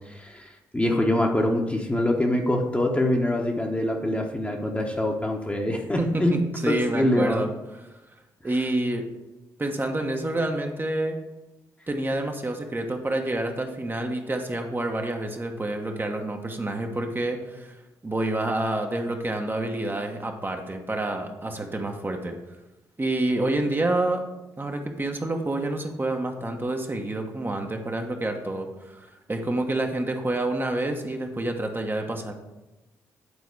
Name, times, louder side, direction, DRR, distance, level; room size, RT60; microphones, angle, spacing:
voice 1, 0.0-6.4 6.7-7.5, left 1 dB, 15° left, 0 dB, 1.2 m, -24 dB
voice 2, 6.0-7.8 8.4-9.0 9.6-11.2 11.9-17.8 18.0-22.3 23.0-24.3 24.6-32.3, right 2 dB, 25° right, 3 dB, 1.1 m, -28 dB
8.3 x 4.1 x 4.8 m, 1.0 s
hypercardioid pair, 45°, 9 cm